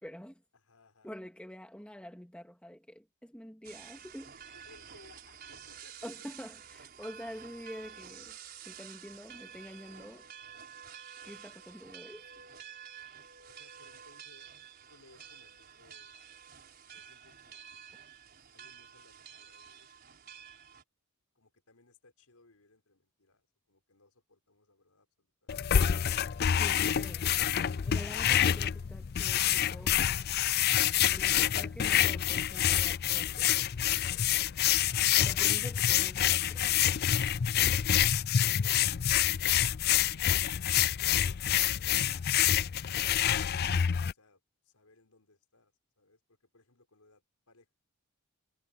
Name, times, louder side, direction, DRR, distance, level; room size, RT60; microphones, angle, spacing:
voice 1, 0.0-0.4 1.0-4.3 6.0-8.4 8.6-10.3 11.2-12.3 26.4-27.3 27.9-30.0 31.1-33.7 35.2-36.9, equal, 5° left, 2.3 m, -47 dB
voice 2, 0.5-1.2 4.5-6.1 13.5-14.5 14.9-16.2 16.8-18.0 18.5-20.3 21.3-25.5 38.4-43.4 44.1-47.7, left 2 dB, 85° left, 5.1 m, -63 dB
sound 1, 3.6-20.8, right 8 dB, 45° right, 5.7 m, -50 dB
sound 2, 25.5-44.1, left 10 dB, 45° left, 0.4 m, -27 dB
head